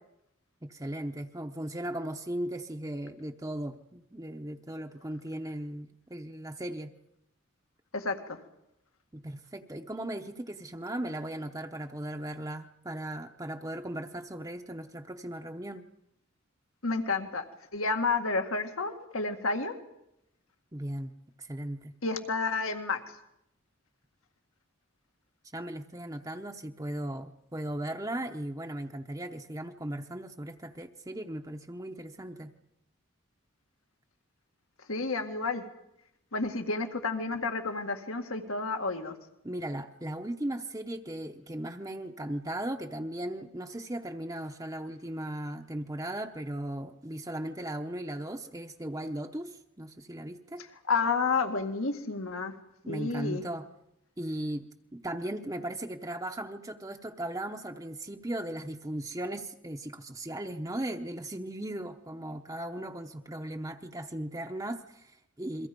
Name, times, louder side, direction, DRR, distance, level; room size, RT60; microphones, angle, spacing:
voice 1, 0.6-6.9 9.1-15.9 20.7-21.9 25.5-32.5 39.4-50.6 52.8-53.7 54.2-54.6 54.9-65.7, right 1 dB, 15° right, 3 dB, 0.8 m, -37 dB
voice 2, 16.8-17.4 17.7-19.7 22.0-23.0 34.9-35.6 36.3-39.1 50.9-52.6 52.9-53.4, left 4 dB, 80° left, 6 dB, 2.0 m, -30 dB
29.5 x 23.0 x 5.3 m, 0.81 s
head